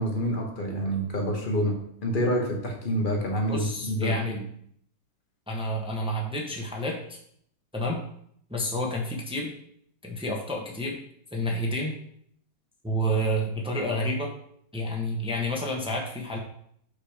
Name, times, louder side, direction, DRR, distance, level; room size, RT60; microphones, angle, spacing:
voice 1, 0.0-4.4, equal, 30° left, 1 dB, 1.2 m, -27 dB
voice 2, 3.4-4.4 5.5-7.2 7.7-8.0 8.5-9.5 10.0-11.0 11.3-11.9 12.8-14.3 14.7-16.4, equal, 5° right, -1 dB, 0.6 m, -29 dB
6.1 x 5.1 x 5.1 m, 0.68 s
omnidirectional pair, 2.3 m